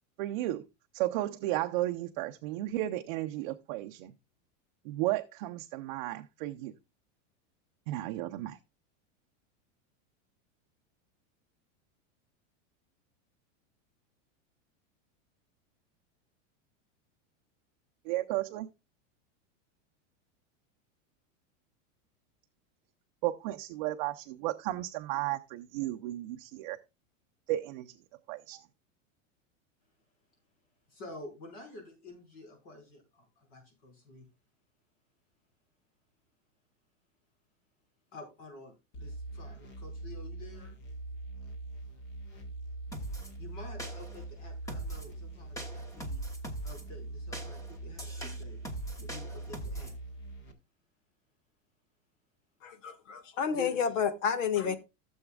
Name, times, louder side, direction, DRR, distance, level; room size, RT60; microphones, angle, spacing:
voice 1, 0.2-0.6 0.9-4.1 4.8-6.7 7.9-8.6 18.1-18.7 23.2-26.8 27.5-27.9 28.3-28.6, right 15 dB, 40° right, 0.6 m, -34 dB
voice 2, 30.9-34.3 38.1-40.8 43.4-46.2 46.6-48.6 49.0-49.9 53.5-54.0, left 2 dB, 45° left, 5.3 m, -49 dB
sound 1, 38.9-50.5, right 2 dB, 25° left, 1.4 m, -43 dB
sound 2, 42.9-43.3 43.8-44.2 44.7-45.1 45.6-46.8 47.3-50.0, right 1 dB, 10° left, 1.0 m, -41 dB
voice 3, 52.6-54.8, left 7 dB, 80° left, 1.6 m, -30 dB
16.0 x 7.1 x 2.3 m
supercardioid pair, 170°, 38 cm